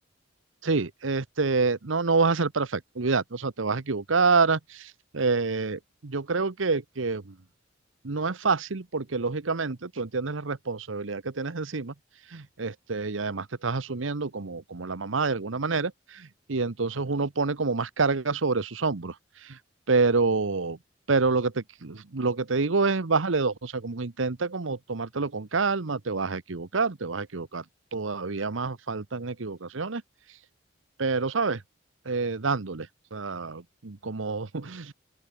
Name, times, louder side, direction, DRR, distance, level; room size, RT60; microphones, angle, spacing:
voice 1, 0.6-7.3 8.0-11.9 12.3-19.1 19.4-19.6 19.9-20.8 21.1-27.6 27.9-30.0 31.0-31.6 32.1-34.9, right 4 dB, 90° right, 1.0 m, -27 dB
open air
head